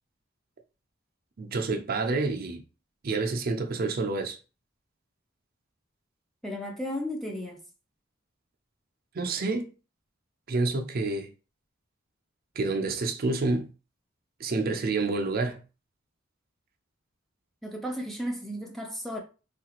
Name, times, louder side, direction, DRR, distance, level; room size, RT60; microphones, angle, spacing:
voice 1, 1.4-2.6 3.0-4.4 9.1-9.7 10.5-11.3 12.6-13.7 14.4-15.6, right 3 dB, 50° right, 0.5 m, -28 dB
voice 2, 6.4-7.6 17.6-19.2, equal, ahead, 0.4 m, -34 dB
3.2 x 2.4 x 2.9 m
head